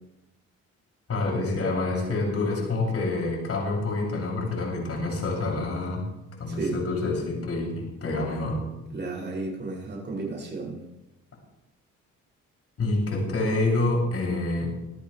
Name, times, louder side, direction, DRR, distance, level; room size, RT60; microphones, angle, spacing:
voice 1, 1.1-6.0 6.4-8.6 12.8-14.7, left 2 dB, 50° left, -1 dB, 8.0 m, -27 dB
voice 2, 6.5-6.8 8.9-10.8, right 3 dB, 35° right, -2 dB, 7.4 m, -33 dB
25.5 x 14.0 x 3.5 m, 1.0 s
cardioid pair, 90°, 30 cm